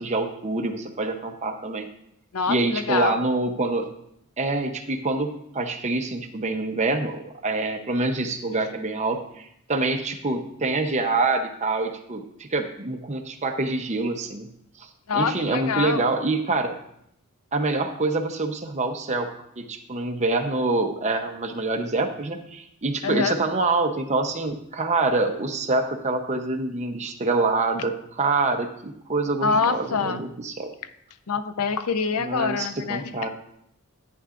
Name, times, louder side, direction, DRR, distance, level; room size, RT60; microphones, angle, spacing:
voice 1, 0.0-1.9 2.5-3.8 4.4-14.5 14.8-14.9 15.1-16.8 17.5-19.3 19.6-30.7 32.2-33.3, right 3 dB, 30° right, 4 dB, 0.8 m, -26 dB
voice 2, 2.3-3.2 15.1-16.0 23.0-23.3 29.4-30.2 31.3-33.0, left 5 dB, 80° left, 12 dB, 0.6 m, -25 dB
11.0 x 9.5 x 2.5 m, 0.74 s
head